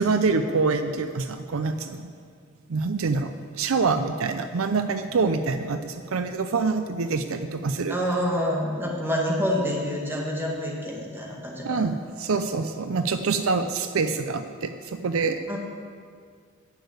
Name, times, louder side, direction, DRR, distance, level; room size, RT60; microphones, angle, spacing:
voice 1, 0.0-2.1 2.7-8.0 11.6-15.4, right 4 dB, 70° right, 9 dB, 0.5 m, -26 dB
voice 2, 7.9-11.9 15.5-15.6, equal, 10° right, -2 dB, 1.9 m, -27 dB
10.5 x 6.8 x 8.0 m, 2.1 s
head